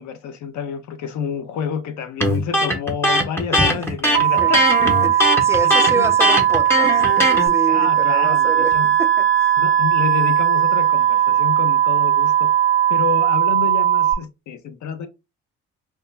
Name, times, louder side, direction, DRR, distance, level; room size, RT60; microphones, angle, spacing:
voice 1, 0.0-4.8 5.6-6.1 7.7-9.0 9.6-12.5 12.9-15.1, left 7 dB, 60° left, 0.6 m, -29 dB
Electric guitar, 2.2-7.5, left 1 dB, 5° left, 0.8 m, -19 dB
voice 2, 3.5-3.9 4.4-4.5 5.0-9.6, right 2 dB, 10° right, 0.3 m, -28 dB
sound 1, 4.1-14.1, right 11 dB, 30° right, 0.8 m, -18 dB
Wind instrument woodwind instrument, 4.9-13.2, right 1 dB, 45° left, 1.2 m, -34 dB
2.2 x 2.1 x 3.2 m
hypercardioid pair, 50°, 33 cm